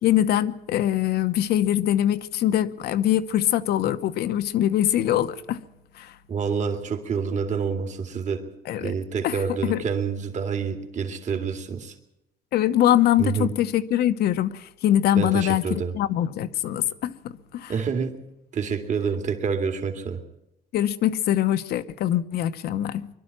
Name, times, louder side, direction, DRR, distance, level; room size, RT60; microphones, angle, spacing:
voice 1, 0.0-5.6 6.0-6.1 8.7-8.9 9.2-9.8 12.5-17.1 17.5-17.7 20.7-23.1, left 12 dB, 70° left, 1.0 m, -23 dB
voice 2, 6.3-8.5 8.8-11.9 13.2-13.5 15.1-15.9 17.7-18.2 18.5-20.2, right 6 dB, 45° right, 2.4 m, -27 dB
22.5 x 12.0 x 9.6 m
cardioid pair, 110°, 17 cm